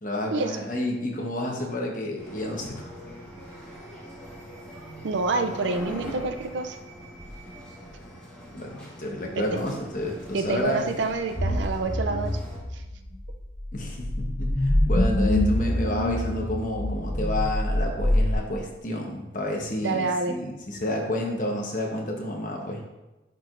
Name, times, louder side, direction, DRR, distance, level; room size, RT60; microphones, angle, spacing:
voice 1, 0.0-2.9 8.5-10.9 13.7-22.8, left 1 dB, 45° left, 0 dB, 1.1 m, -30 dB
sound 1, 2.2-12.6, equal, 5° left, 1.5 m, -42 dB
voice 2, 5.0-6.8 9.4-9.6 10.3-12.4 19.8-20.4, right 3 dB, 75° right, 7 dB, 0.5 m, -27 dB
sound 2, 11.4-18.4, left 1 dB, 75° left, 2.2 m, -25 dB
10.0 x 4.6 x 2.6 m, 1.1 s
head